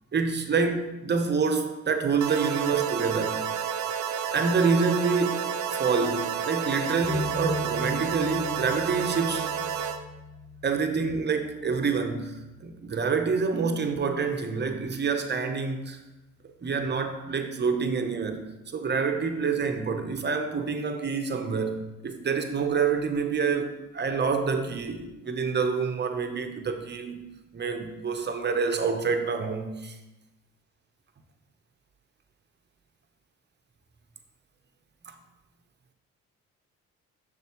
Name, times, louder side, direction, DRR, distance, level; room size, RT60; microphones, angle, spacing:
voice 1, 0.1-3.4 4.3-5.4 5.7-9.5 10.6-16.0 16.6-18.4 18.7-27.2 27.5-30.0 35.1-35.2, right 5 dB, 35° right, 0.8 m, -27 dB
sound 1, 2.2-10.0, right 8 dB, 70° right, 0.6 m, -30 dB
sound 2, 7.0-14.1, left 2 dB, 5° left, 0.6 m, -39 dB
7.1 x 6.6 x 3.0 m
cardioid pair, 90°, 30 cm